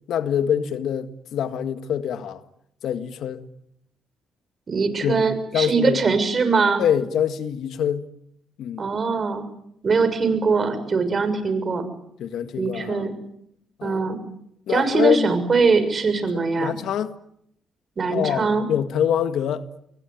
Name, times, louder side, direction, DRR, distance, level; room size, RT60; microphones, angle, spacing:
voice 1, 0.1-2.4 2.8-3.4 5.0-5.2 5.5-6.0 6.8-8.1 8.6-8.9 12.2-13.1 13.8-14.1 14.7-15.3 16.3-17.1 18.1-19.6, left 9 dB, 75° left, 1.8 m, -25 dB
voice 2, 4.7-6.8 8.8-9.4 9.8-11.8 12.6-13.1 13.8-14.2 14.7-16.7 18.0-18.6, right 4 dB, 40° right, 6.6 m, -22 dB
27.0 x 23.5 x 9.3 m
cardioid pair, 90°, 0 cm